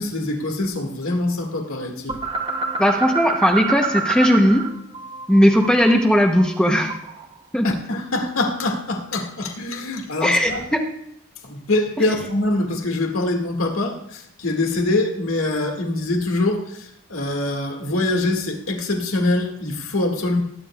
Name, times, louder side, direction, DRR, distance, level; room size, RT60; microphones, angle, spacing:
voice 1, 0.0-2.2 7.6-10.7 11.4-20.4, left 2 dB, 85° left, 2 dB, 2.1 m, -24 dB
sound 1, 2.1-4.7 4.9-7.2, right 4 dB, 25° right, 0.9 m, -27 dB
voice 2, 2.8-4.7 5.3-6.9 7.5-7.6 10.2-10.8, equal, 5° left, 2 dB, 0.8 m, -17 dB
18.5 x 9.9 x 2.4 m, 0.75 s
head